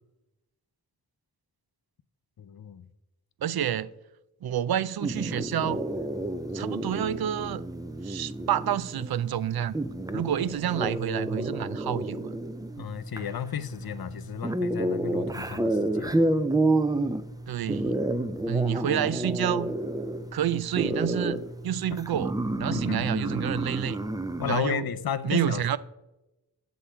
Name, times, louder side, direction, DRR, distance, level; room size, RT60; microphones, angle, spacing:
voice 1, 2.4-2.9 10.4-10.5 12.8-16.1 21.9-22.0 22.7-23.1 24.4-25.6, left 9 dB, 65° left, 0.6 m, -33 dB
voice 2, 3.4-3.9 4.4-5.8 6.5-7.6 8.0-9.8 10.1-12.3 17.5-17.9 18.5-19.7 20.3-22.3 22.6-24.0 24.5-24.9 25.2-25.8, right 10 dB, 65° right, 0.5 m, -29 dB
sound 1, 5.0-24.6, right 1 dB, 10° right, 0.5 m, -30 dB
8.4 x 7.1 x 4.4 m
wide cardioid pair, 65°, 40 cm